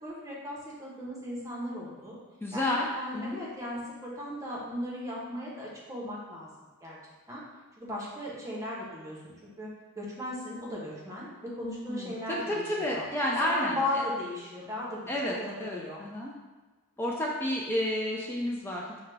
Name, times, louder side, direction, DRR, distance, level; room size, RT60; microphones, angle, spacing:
voice 1, 0.0-2.2 2.5-2.7 2.9-6.5 6.8-7.0 7.3-7.4 7.8-9.7 10.0-13.1 13.5-15.0 15.3-16.0, left 1 dB, 15° right, -6 dB, 0.8 m, -36 dB
voice 2, 2.4-2.9 3.1-3.4 11.9-13.8 15.1-15.3 15.6-16.3 17.0-19.0, left 1 dB, 10° left, -3 dB, 0.3 m, -30 dB
4.8 x 2.2 x 3.2 m, 1.2 s
head